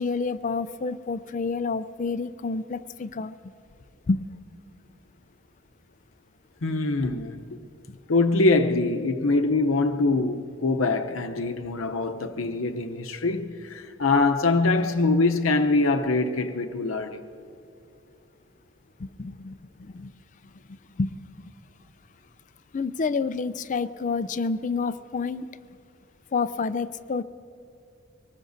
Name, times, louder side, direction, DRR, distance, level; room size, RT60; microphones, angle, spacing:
voice 1, 0.0-3.3 4.1-4.2 7.9-8.0 19.0-20.1 20.7-21.1 22.7-25.4 26.3-27.2, left 4 dB, 40° left, 0.4 m, -29 dB
voice 2, 6.6-7.6 8.1-17.2, left 3 dB, 85° left, 0.7 m, -24 dB
24.0 x 19.5 x 2.7 m
head